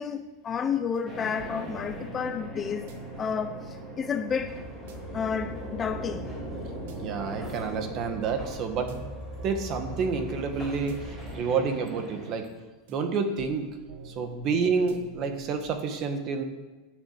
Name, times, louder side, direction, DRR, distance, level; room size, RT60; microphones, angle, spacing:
voice 1, 0.0-4.6 5.1-6.3, left 6 dB, 20° left, 0.5 m, -31 dB
sound 1, 0.9-1.0 1.4-1.6 1.9-4.0 4.9-5.0 5.4-5.6 5.9-8.0 8.9-9.0 9.4-9.6 9.9-12.0 12.9-13.6 13.9-15.7, right 4 dB, 70° right, 1.4 m, -47 dB
sound 2, 1.0-12.3, right 1 dB, 20° right, 3.9 m, -41 dB
sound 3, 4.3-11.4, equal, ahead, 4.7 m, -41 dB
voice 2, 6.9-9.1 9.4-12.5 12.9-13.7 14.0-16.4, right 5 dB, 35° right, 1.3 m, -29 dB
9.8 x 6.8 x 8.0 m
supercardioid pair, 165°, 0 cm